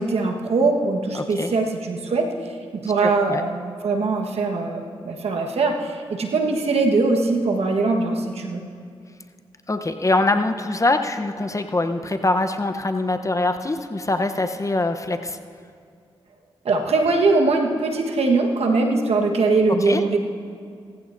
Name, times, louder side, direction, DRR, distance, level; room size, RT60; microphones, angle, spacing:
voice 1, 0.0-8.6 16.6-20.2, right 3 dB, 75° right, 2 dB, 1.4 m, -21 dB
voice 2, 1.1-1.5 3.0-3.4 9.7-15.4 19.9-20.0, left 2 dB, 30° left, 7 dB, 0.9 m, -23 dB
18.5 x 15.0 x 2.7 m, 2.3 s
supercardioid pair, 40°, 11 cm